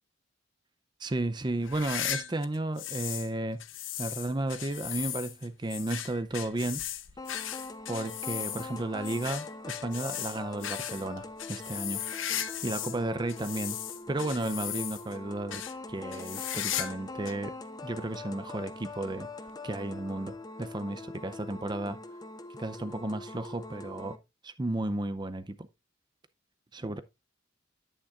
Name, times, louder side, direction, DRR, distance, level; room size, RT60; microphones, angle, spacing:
voice 1, 1.0-3.6 4.0-6.8 7.9-12.0 12.6-13.8 14.1-17.5 17.8-19.3 19.6-22.0 22.6-24.2 24.4-25.7 26.7-27.0, right 2 dB, 20° right, 0.5 m, -33 dB
sound 1, 1.6-3.3 3.6-13.0 13.3-15.2 15.5-15.7 16.1-17.0 17.3-17.4 18.1-18.2 19.5-19.6, left 11 dB, 75° left, 0.9 m, -37 dB
sound 2, 7.2-24.2, left 2 dB, 20° left, 0.7 m, -43 dB
10.5 x 8.8 x 2.4 m
head